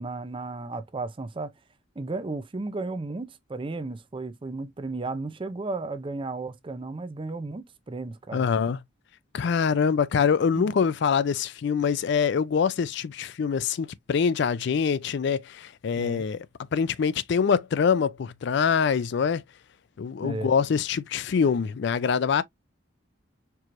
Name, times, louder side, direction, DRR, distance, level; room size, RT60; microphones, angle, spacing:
voice 1, 0.0-1.5 2.0-8.5 10.5-10.7 16.0-16.2 20.2-20.5, right 3 dB, 25° right, 0.5 m, -34 dB
voice 2, 8.3-8.8 9.3-16.5 16.7-19.4 20.0-22.4, left 6 dB, 60° left, 0.4 m, -24 dB
4.6 x 2.9 x 2.5 m
head